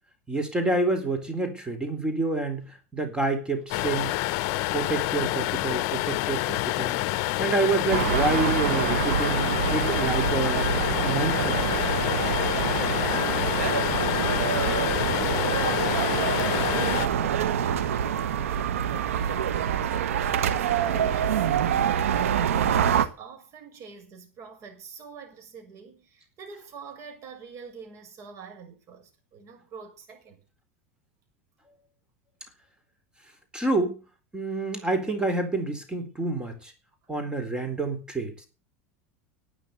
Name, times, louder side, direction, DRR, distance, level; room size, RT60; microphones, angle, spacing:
voice 1, 0.3-2.6 2.9-4.1 4.7-6.9 7.4-9.4 9.7-10.7 11.0-11.6 33.5-34.0 34.3-36.7 37.1-38.3, right 2 dB, 10° right, 4.1 m, -28 dB
sound 1, 3.7-17.1, left 17 dB, 60° left, 0.8 m, -27 dB
sound 2, 7.9-23.1, right 8 dB, 90° right, 1.5 m, -26 dB
voice 2, 13.6-30.4, right 6 dB, 45° right, 7.0 m, -45 dB
12.5 x 9.3 x 7.8 m
supercardioid pair, 110°, 7 cm